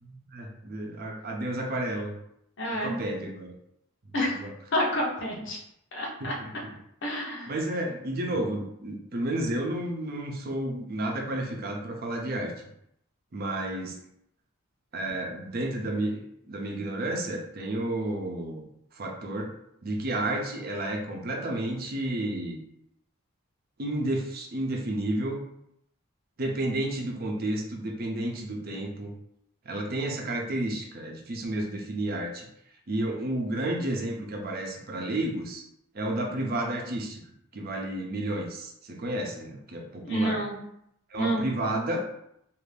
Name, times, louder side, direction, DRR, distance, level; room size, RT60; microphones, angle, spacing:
voice 1, 0.0-2.1 2.8-3.5 4.4-4.5 6.2-6.5 7.5-12.5 13.3-14.0 14.9-18.6 18.9-19.5 19.8-22.6 23.8-25.4 26.4-29.1 29.7-32.5 32.9-35.6 35.9-37.2 37.5-40.4 41.1-42.0, right 1 dB, 45° right, 1 dB, 0.5 m, -31 dB
voice 2, 2.6-2.9 4.1-4.3 4.7-5.6 5.9-6.3 7.0-7.5 40.0-40.6 41.2-41.4, equal, 60° left, -2 dB, 0.8 m, -28 dB
2.5 x 2.5 x 3.3 m, 0.76 s
head